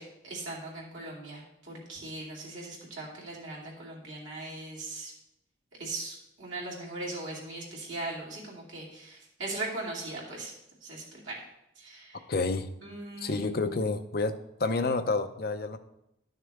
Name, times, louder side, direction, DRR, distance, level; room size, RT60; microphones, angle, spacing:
voice 1, 0.0-5.1 5.7-10.5 10.8-11.4 11.8-12.2 12.8-13.5, right 2 dB, 85° right, -4 dB, 2.8 m, -39 dB
voice 2, 12.3-12.7 13.2-15.8, left 3 dB, 50° left, 8 dB, 0.6 m, -29 dB
11.5 x 6.5 x 3.5 m, 0.85 s
head